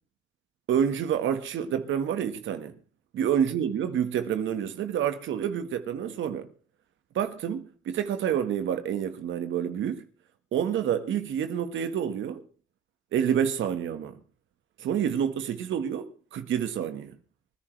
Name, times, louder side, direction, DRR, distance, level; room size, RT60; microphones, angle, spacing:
voice 1, 0.7-2.7 3.1-6.5 7.1-10.0 10.5-12.4 13.1-14.2 14.8-17.1, right 9 dB, 75° right, 1.6 m, -28 dB
25.0 x 10.5 x 3.3 m
cardioid pair, 90°, 20 cm